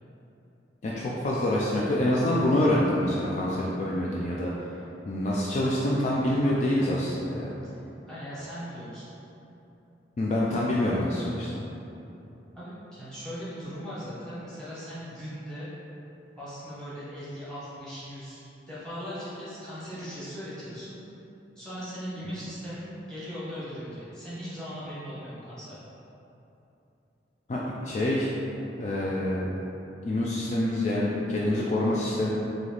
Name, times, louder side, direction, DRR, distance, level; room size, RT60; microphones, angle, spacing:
voice 1, 0.8-4.5 5.1-7.5 10.2-11.6 27.5-28.3 28.8-29.5 30.0-32.3, left 1 dB, 40° left, -5 dB, 0.3 m, -26 dB
voice 2, 7.7-9.0 12.5-15.7 16.4-18.4 18.7-21.0 21.6-25.9, equal, 5° left, -11 dB, 1.1 m, -39 dB
3.9 x 2.9 x 3.2 m, 2.9 s
head